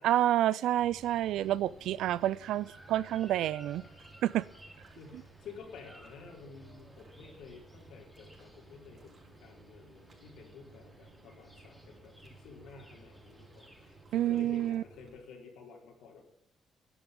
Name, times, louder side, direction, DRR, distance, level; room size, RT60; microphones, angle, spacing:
voice 1, 0.0-3.8 4.2-4.5 14.1-14.8, right 13 dB, 85° right, 0.4 m, -29 dB
sound 1, 0.7-14.7, right 1 dB, ahead, 3.6 m, -59 dB
sound 2, 0.8-15.2, right 2 dB, 50° right, 4.6 m, -57 dB
voice 2, 5.0-16.2, left 5 dB, 85° left, 4.2 m, -51 dB
11.0 x 9.0 x 8.5 m
cardioid pair, 90°, 0 cm